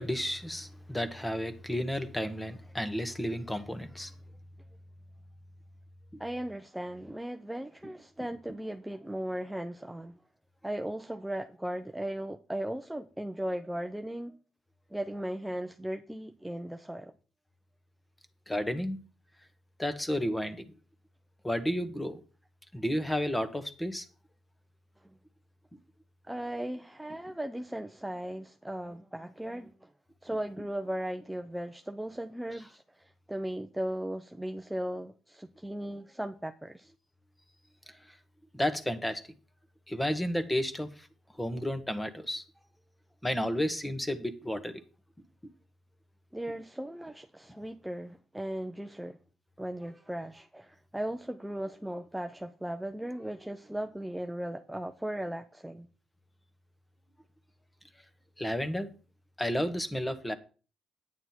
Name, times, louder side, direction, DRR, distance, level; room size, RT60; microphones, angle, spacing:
voice 1, 0.0-4.1 18.5-19.0 19.8-20.7 21.4-22.2 22.7-24.1 37.9-38.2 38.5-39.2 39.9-41.1 41.4-42.4 43.2-44.7 58.4-58.9 59.4-60.3, equal, 10° left, 1.5 m, -32 dB
voice 2, 6.2-10.2 10.6-14.4 14.9-17.1 26.3-29.9 30.2-36.9 46.3-49.2 49.6-55.9, right 1 dB, 5° right, 0.7 m, -37 dB
9.5 x 8.9 x 4.4 m
cardioid pair, 90°, 0 cm